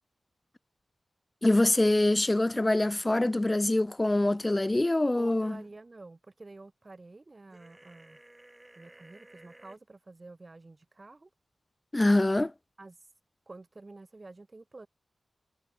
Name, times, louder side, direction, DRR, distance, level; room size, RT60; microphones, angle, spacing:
voice 1, 1.4-5.6 11.9-12.5, left 2 dB, 20° left, 1.0 m, -24 dB
voice 2, 5.1-8.2 8.8-11.3 12.8-13.1 13.5-14.9, right 3 dB, 35° right, 5.6 m, -49 dB
sound 1, 7.5-9.8, right 1 dB, 15° right, 5.0 m, -55 dB
wide cardioid pair, 80°, 0 cm